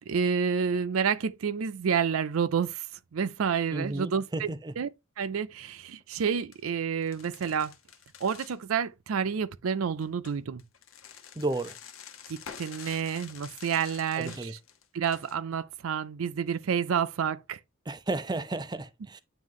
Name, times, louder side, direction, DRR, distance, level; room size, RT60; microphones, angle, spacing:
voice 1, 0.1-2.9 3.1-4.5 4.8-4.9 5.2-7.7 8.2-10.6 12.3-14.6 14.9-17.6, right 7 dB, 80° right, 0.5 m, -29 dB
voice 2, 3.7-4.7 11.4-11.7 14.2-14.5 17.9-19.2, right 2 dB, 20° right, 0.5 m, -33 dB
sound 1, 6.0-6.2 6.5-6.6 7.0-8.6 10.0-15.3, left 8 dB, 75° left, 1.0 m, -48 dB
9.1 x 3.1 x 3.6 m
head